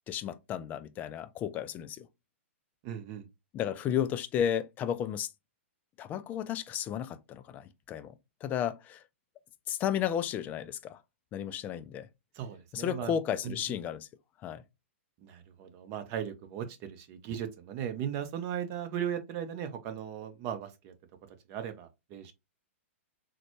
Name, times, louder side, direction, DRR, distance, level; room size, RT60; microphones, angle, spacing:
voice 1, 0.1-2.1 3.5-5.3 6.0-9.0 9.7-11.0 11.3-12.1 12.7-14.1 14.4-14.6, left 9 dB, 25° left, 0.3 m, -33 dB
voice 2, 2.8-3.3 12.3-13.8 15.2-20.9 21.5-22.3, right 9 dB, 35° right, 0.8 m, -37 dB
3.8 x 2.2 x 3.0 m
hypercardioid pair, 135°, 7 cm